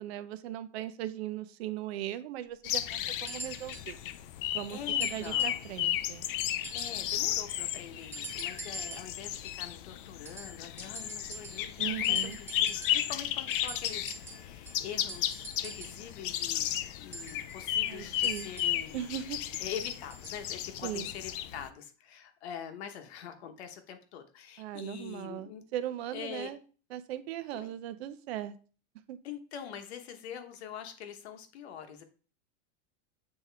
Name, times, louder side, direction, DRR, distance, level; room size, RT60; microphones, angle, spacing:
voice 1, 0.0-4.0 4.5-6.3 11.8-12.4 17.8-18.5 18.9-19.4 20.8-21.1 24.6-26.6 26.9-28.6 29.1-29.2, right 12 dB, 65° right, 0.7 m, -38 dB
sound 1, 2.6-21.7, left 12 dB, 50° left, 0.4 m, -34 dB
sound 2, 3.3-3.9 5.0-5.7 6.6-7.2 8.1-9.2 10.2-11.8 12.0-13.1 13.5-16.1 17.1-18.8 20.1-20.4 21.3-21.4, right 2 dB, 5° right, 0.9 m, -45 dB
voice 2, 4.7-5.6 6.7-19.0 19.6-25.6 26.1-26.5 27.5-27.7 29.2-32.0, left 8 dB, 70° left, 1.1 m, -44 dB
7.9 x 3.6 x 3.4 m
supercardioid pair, 170°, 34 cm